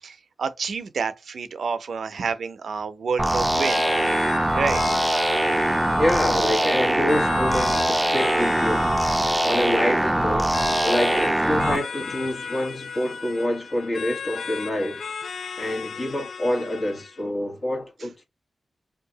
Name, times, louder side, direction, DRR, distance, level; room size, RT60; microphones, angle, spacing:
voice 1, 0.0-3.9 4.5-4.8, right 5 dB, 80° right, 0.5 m, -28 dB
sound 1, 3.2-11.8, right 1 dB, 15° right, 0.6 m, -22 dB
sound 2, 3.6-17.2, left 6 dB, 80° left, 0.4 m, -35 dB
voice 2, 6.0-9.1 9.4-15.1 15.6-18.2, left 1 dB, 40° left, 1.4 m, -27 dB
2.7 x 2.3 x 3.9 m
cardioid pair, 70°, 0 cm